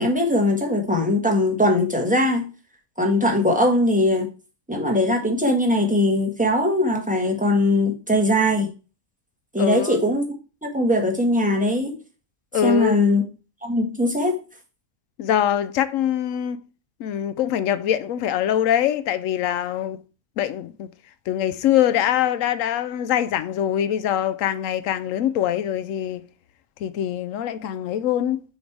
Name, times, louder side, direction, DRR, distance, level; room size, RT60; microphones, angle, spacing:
voice 1, 0.0-2.5 3.0-4.3 4.7-8.7 9.5-10.3 10.7-12.0 12.6-13.2 13.6-14.3, left 1 dB, 5° right, 1.3 m, -20 dB
voice 2, 9.6-10.0 12.5-13.0 15.2-16.6 17.0-20.0 20.4-20.9 21.3-26.3 26.8-28.4, left 10 dB, 70° left, 0.9 m, -23 dB
6.4 x 3.6 x 4.6 m
omnidirectional pair, 1.5 m